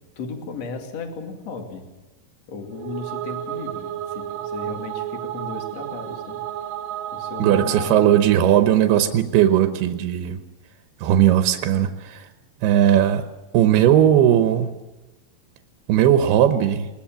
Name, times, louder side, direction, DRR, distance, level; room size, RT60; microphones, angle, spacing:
voice 1, 0.2-1.8 2.5-6.4 7.1-8.1, left 4 dB, 45° left, 3 dB, 3.4 m, -35 dB
sound 1, 2.7-8.4, right 12 dB, 75° right, 2.5 m, -32 dB
voice 2, 7.4-10.4 11.0-12.3 12.6-13.3 13.5-14.7 15.9-16.9, right 10 dB, 90° right, 7 dB, 2.9 m, -17 dB
21.0 x 21.0 x 7.5 m, 1.1 s
omnidirectional pair, 4.4 m